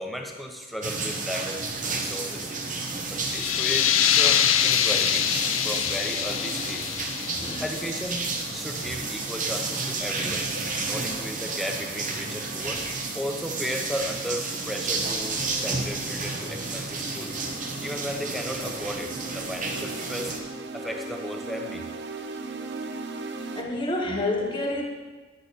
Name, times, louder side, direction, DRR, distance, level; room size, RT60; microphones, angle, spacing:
voice 1, 0.0-2.5 3.1-5.3 5.6-6.9 7.6-10.5 10.7-12.8 13.1-17.4 17.8-20.4 20.7-21.8, equal, ahead, 2 dB, 0.8 m, -35 dB
sound 1, 0.8-20.4, right 3 dB, 40° right, 1.0 m, -31 dB
sound 2, 3.2-8.6, left 10 dB, 70° left, 0.5 m, -25 dB
voice 2, 7.3-7.6 23.6-24.8, left 2 dB, 20° left, 0 dB, 1.3 m, -28 dB
sound 3, 14.6-23.6, right 3 dB, 55° right, 0.6 m, -39 dB
9.5 x 8.3 x 4.1 m, 1.3 s
head